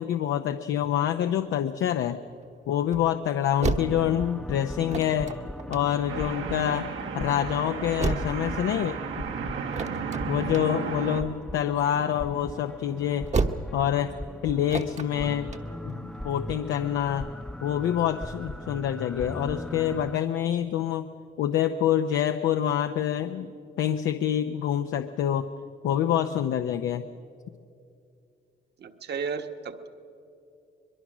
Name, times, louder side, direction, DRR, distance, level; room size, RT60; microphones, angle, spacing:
voice 1, 0.0-2.2 2.7-5.3 5.7-6.9 7.1-9.2 10.3-13.3 13.7-14.1 14.4-15.6 15.8-17.3 17.6-21.1 21.4-25.5 25.8-27.1, left 10 dB, 80° left, 7 dB, 0.7 m, -26 dB
sound 1, 1.3-16.8, right 4 dB, 35° right, 1.1 m, -35 dB
sound 2, 3.8-20.2, equal, 5° left, 0.7 m, -40 dB
sound 3, 6.1-11.2, right 6 dB, 75° right, 1.5 m, -34 dB
voice 2, 28.8-29.9, right 5 dB, 55° right, 7 dB, 1.4 m, -33 dB
23.5 x 22.0 x 6.2 m, 2.6 s
cardioid pair, 90°, 20 cm